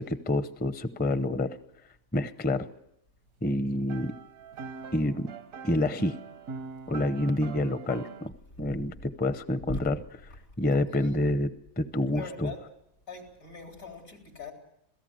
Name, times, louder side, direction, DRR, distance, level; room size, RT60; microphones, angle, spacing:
voice 1, 0.0-1.5 2.1-2.7 3.4-4.1 4.9-5.3 5.6-6.2 6.9-8.3 8.6-10.0 10.6-11.5 11.8-12.5, left 1 dB, 10° left, 12 dB, 0.5 m, -28 dB
sound 1, 3.7-8.3, right 5 dB, 80° right, 1.5 m, -43 dB
voice 2, 10.7-11.2 12.1-12.7 13.1-14.5, left 3 dB, 90° left, 2 dB, 4.4 m, -41 dB
27.0 x 17.0 x 7.9 m, 0.81 s
omnidirectional pair, 1.4 m